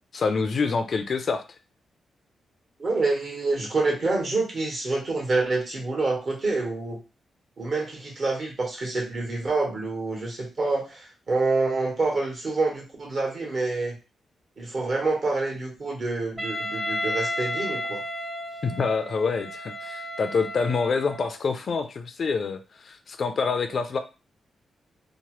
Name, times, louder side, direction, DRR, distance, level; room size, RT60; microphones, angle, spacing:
voice 1, 0.1-1.4 18.6-24.0, left 4 dB, 55° left, 8 dB, 0.4 m, -26 dB
voice 2, 2.8-7.0 7.6-14.0 14.6-18.0, right 3 dB, 50° right, -1 dB, 1.2 m, -27 dB
Wind instrument woodwind instrument, 16.4-21.4, left 1 dB, 20° right, 0.9 m, -32 dB
2.9 x 2.1 x 3.0 m, 0.30 s
cardioid pair, 100°, 0 cm